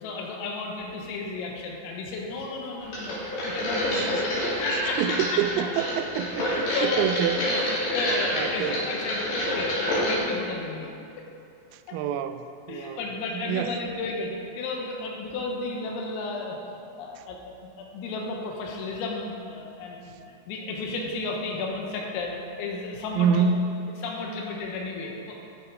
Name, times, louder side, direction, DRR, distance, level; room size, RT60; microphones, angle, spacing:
voice 1, 0.0-3.2 3.4-4.2 4.6-5.4 6.5-7.1 7.4-7.7 7.9-10.9 11.9-12.0 12.7-16.6 17.0-17.4 17.8-23.5 24.0-25.4, left 3 dB, 85° left, 0 dB, 3.9 m, -33 dB
sound 1, 2.9-10.2, left 1 dB, 50° left, 4.3 m, -28 dB
voice 2, 5.0-7.7 8.3-8.8 11.7-13.0 13.3-13.8 23.2-23.7, right 7 dB, 90° right, 9 dB, 3.3 m, -27 dB
13.0 x 8.1 x 4.9 m, 2.6 s
omnidirectional pair, 5.9 m